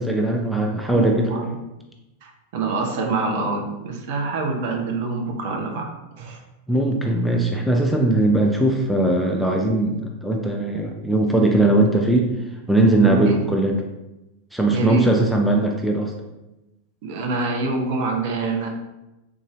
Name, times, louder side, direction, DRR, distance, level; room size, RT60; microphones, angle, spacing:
voice 1, 0.0-1.3 6.7-12.3 12.7-13.8 14.5-16.1, right 2 dB, ahead, -1 dB, 0.4 m, -19 dB
voice 2, 0.9-1.5 2.2-5.9 6.2-6.4 13.0-13.4 14.7-15.0 17.0-18.7, right 3 dB, 50° right, 1 dB, 0.6 m, -26 dB
3.7 x 2.6 x 3.0 m, 0.98 s
figure-of-eight pair, 90°, 0 cm